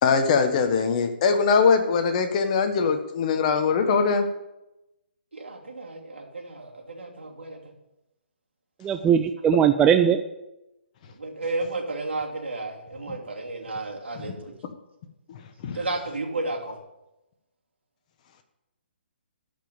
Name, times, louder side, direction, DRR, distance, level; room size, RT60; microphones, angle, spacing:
voice 1, 0.0-4.3 15.3-15.4 15.6-15.8, left 5 dB, 40° left, 7 dB, 1.3 m, -22 dB
voice 2, 5.3-7.6 11.1-14.5 15.7-16.8, right 2 dB, 80° right, -1 dB, 2.9 m, -33 dB
voice 3, 8.8-10.2, right 8 dB, 15° right, 7 dB, 0.4 m, -19 dB
13.5 x 5.5 x 7.0 m, 0.94 s
figure-of-eight pair, 140°, 6 cm